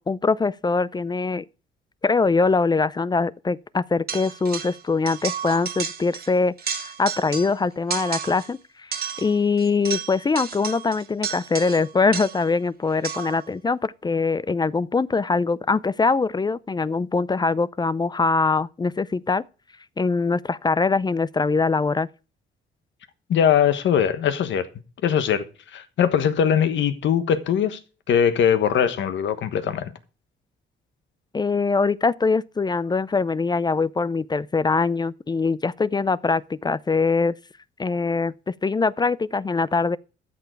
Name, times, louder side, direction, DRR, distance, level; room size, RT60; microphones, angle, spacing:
voice 1, 0.0-1.4 2.0-8.9 9.2-19.4 20.0-22.1 31.3-37.3 37.8-40.0, left 4 dB, 20° left, 0.4 m, -23 dB
sound 1, 4.1-4.8 5.1-6.3 6.6-7.6 7.9-8.5 8.9-12.5 13.0-13.4, right 7 dB, 50° right, 1.5 m, -32 dB
voice 2, 23.3-24.7 25.0-25.4 25.7-27.8 28.1-29.9, left 8 dB, 70° left, 1.3 m, -21 dB
13.5 x 6.8 x 4.5 m
cardioid pair, 90°, 20 cm